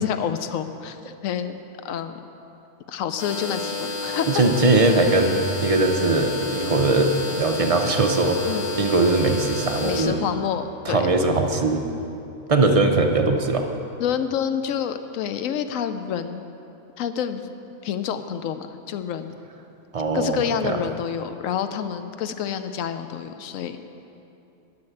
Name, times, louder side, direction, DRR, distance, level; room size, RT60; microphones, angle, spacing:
voice 1, 0.0-1.5 1.8-2.2 2.9-4.4 8.5-8.6 9.8-11.0 14.0-16.4 17.0-17.4 17.8-19.4 20.1-23.8, left 8 dB, 85° left, 9 dB, 1.0 m, -28 dB
sound 1, 3.2-10.0, left 3 dB, 35° left, 1.8 m, -30 dB
voice 2, 4.3-10.2 10.9-11.8 12.5-13.7 19.9-20.8, right 2 dB, 40° right, 4 dB, 0.5 m, -20 dB
11.0 x 6.1 x 7.8 m, 2.8 s
omnidirectional pair, 1.3 m